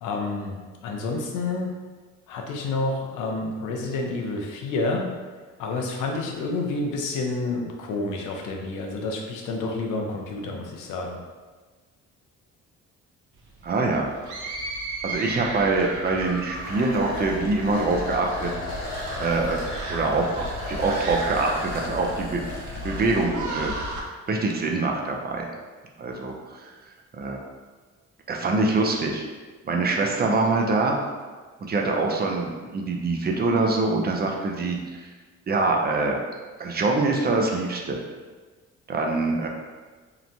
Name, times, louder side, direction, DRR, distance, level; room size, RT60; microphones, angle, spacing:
voice 1, 0.0-1.7 2.3-5.1 5.6-11.2, left 3 dB, 90° left, 1 dB, 0.5 m, -29 dB
sound 1, 13.4-24.0, right 1 dB, 80° right, 0.5 m, -34 dB
voice 2, 13.6-14.1 15.0-18.5 19.2-22.4 22.8-23.7 24.3-25.5 26.0-26.7 27.1-27.4 28.3-29.2 29.6-31.0 31.6-35.1 35.5-36.2 36.6-38.0 38.9-39.5, right 3 dB, 35° right, 0 dB, 0.4 m, -24 dB
sound 2, 16.6-23.2, left 2 dB, 65° left, 0.9 m, -36 dB
2.9 x 2.1 x 2.5 m, 1.4 s
cardioid pair, 90°, 30 cm